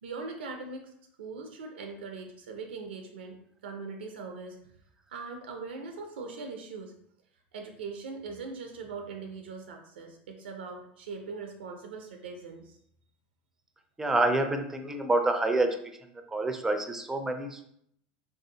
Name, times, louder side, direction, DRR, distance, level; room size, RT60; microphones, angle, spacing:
voice 1, 0.0-0.9 1.2-3.4 3.6-4.7 5.1-6.9 7.5-12.8, right 4 dB, 85° right, 3 dB, 0.4 m, -41 dB
voice 2, 14.0-15.7 16.3-17.6, right 2 dB, 10° right, 5 dB, 0.4 m, -27 dB
3.4 x 2.6 x 2.7 m, 0.71 s
hypercardioid pair, 95°, 6 cm